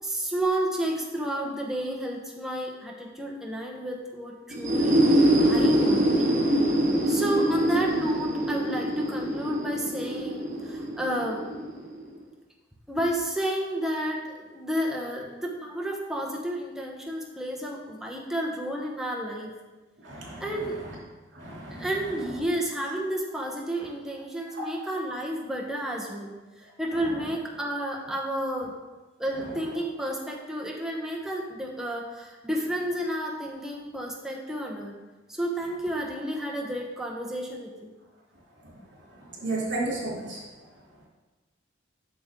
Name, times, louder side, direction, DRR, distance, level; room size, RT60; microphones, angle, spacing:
voice 1, 0.0-5.0 5.4-6.1 7.1-11.4 12.9-19.5 20.4-20.8 21.8-28.7 29.2-34.9 35.3-37.9, right 1 dB, 5° right, -2 dB, 1.0 m, -31 dB
sound 1, 4.5-12.2, right 1 dB, 45° right, 1.6 m, -24 dB
voice 2, 20.0-20.4 21.3-21.9 39.4-40.4, right 2 dB, 65° right, -4 dB, 2.8 m, -32 dB
8.5 x 6.0 x 3.7 m, 1.2 s
head